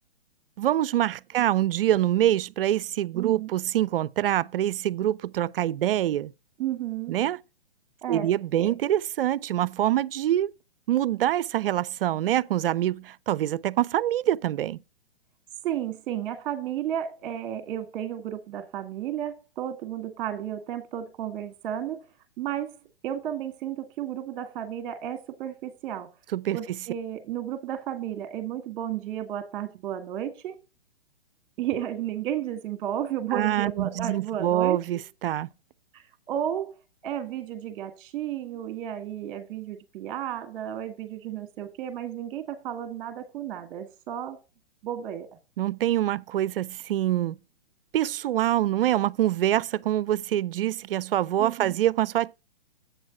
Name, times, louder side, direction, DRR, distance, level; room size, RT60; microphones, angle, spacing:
voice 1, 0.6-6.3 7.1-7.4 8.1-10.5 10.9-14.8 26.3-26.8 33.3-35.5 45.6-47.4 47.9-52.3, right 12 dB, 60° right, 0.5 m, -25 dB
voice 2, 3.1-3.5 6.6-7.1 8.0-8.3 8.6-8.7 15.6-22.0 22.4-22.8 23.0-26.1 26.5-30.6 31.6-35.0 35.9-36.8 37.0-44.4 44.8-45.3 51.4-51.8, right 10 dB, 30° right, 1.8 m, -33 dB
7.9 x 6.1 x 4.2 m
hypercardioid pair, 135°, 31 cm